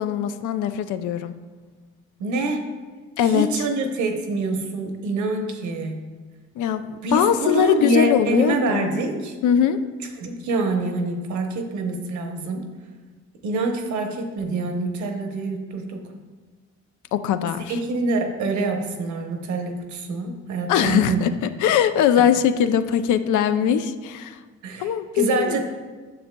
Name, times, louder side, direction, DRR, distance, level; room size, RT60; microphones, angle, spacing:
voice 1, 0.0-1.3 3.2-3.5 6.6-8.9 9.4-9.8 17.1-17.8 20.7-24.4 24.8-25.6, left 9 dB, 80° left, 11 dB, 0.5 m, -21 dB
voice 2, 2.2-2.6 3.2-6.0 7.0-9.4 10.2-12.7 13.4-16.0 17.7-21.3 24.6-24.9 25.1-25.6, right 2 dB, 70° right, 4 dB, 1.0 m, -25 dB
9.2 x 6.4 x 2.3 m, 1.4 s
cardioid pair, 90°, 30 cm